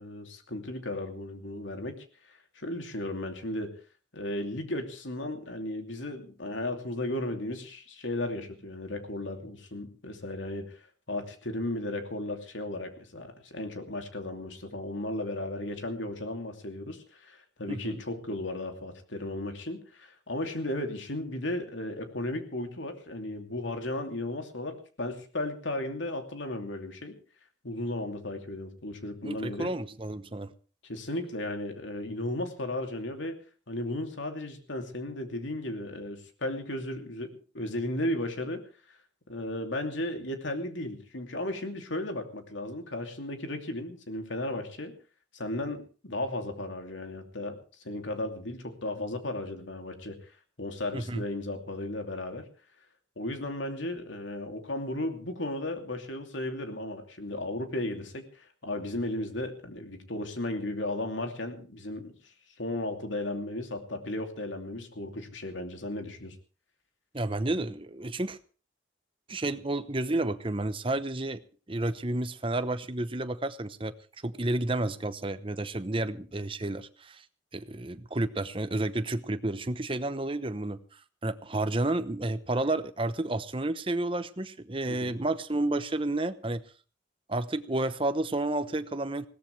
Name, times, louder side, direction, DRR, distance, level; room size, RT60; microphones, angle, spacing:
voice 1, 0.0-3.7 4.1-10.8 11.1-27.2 27.6-29.7 30.9-33.4 33.7-38.6 39.3-44.9 45.3-47.6 47.8-50.2 50.6-52.4 53.2-62.1 62.6-66.4 84.9-85.1, left 1 dB, 85° left, 5 dB, 2.7 m, -35 dB
voice 2, 17.7-18.0 29.2-30.5 50.9-51.2 67.1-68.4 69.3-71.4 71.7-73.9 74.2-77.2 77.5-86.6 87.3-89.3, right 2 dB, 30° right, 12 dB, 0.9 m, -31 dB
21.0 x 17.0 x 3.3 m, 0.36 s
head